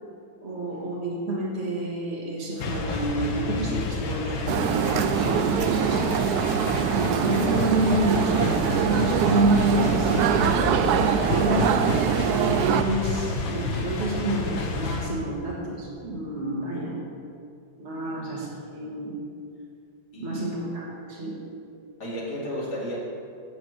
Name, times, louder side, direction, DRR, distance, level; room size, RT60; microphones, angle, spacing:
voice 1, 0.4-17.0 17.8-19.2 20.2-21.4, right 1 dB, 35° right, -4 dB, 1.7 m, -29 dB
sound 1, 2.6-15.1, left 3 dB, 70° left, 1.8 m, -29 dB
sound 2, 4.5-12.8, right 9 dB, 85° right, 0.8 m, -24 dB
voice 2, 20.1-20.4 22.0-23.0, left 1 dB, 55° left, -5 dB, 3.1 m, -33 dB
12.5 x 5.1 x 7.9 m, 2.5 s
omnidirectional pair, 2.2 m